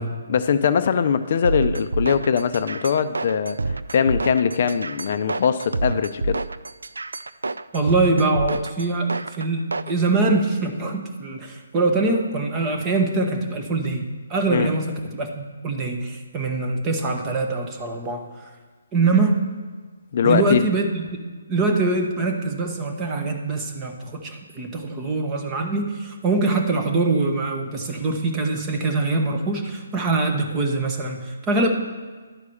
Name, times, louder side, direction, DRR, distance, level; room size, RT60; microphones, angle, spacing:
voice 1, 0.3-3.6 3.9-6.4 14.5-14.7 20.1-20.6, left 7 dB, 50° left, 10 dB, 0.5 m, -21 dB
sound 1, 1.4-9.9, right 3 dB, 90° right, 0.4 m, -28 dB
voice 2, 7.7-18.5 18.9-19.5 20.2-21.2 21.5-31.7, right 3 dB, 20° right, 3 dB, 1.2 m, -23 dB
10.5 x 4.8 x 7.1 m, 1.5 s
hypercardioid pair, 150°, 0 cm